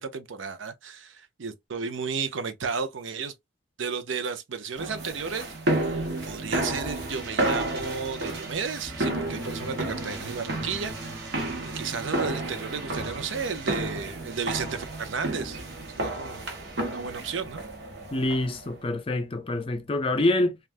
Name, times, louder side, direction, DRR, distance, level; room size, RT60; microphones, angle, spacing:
voice 1, 0.0-3.3 3.8-15.6 16.0-16.5 16.9-17.6, right 5 dB, 80° right, 0.6 m, -33 dB
sound 1, 4.8-18.7, right 2 dB, 65° right, 1.0 m, -31 dB
sound 2, 8.9-14.2, equal, 15° right, 0.7 m, -45 dB
voice 2, 18.1-20.6, left 2 dB, 30° left, 0.5 m, -26 dB
3.3 x 2.4 x 2.4 m
head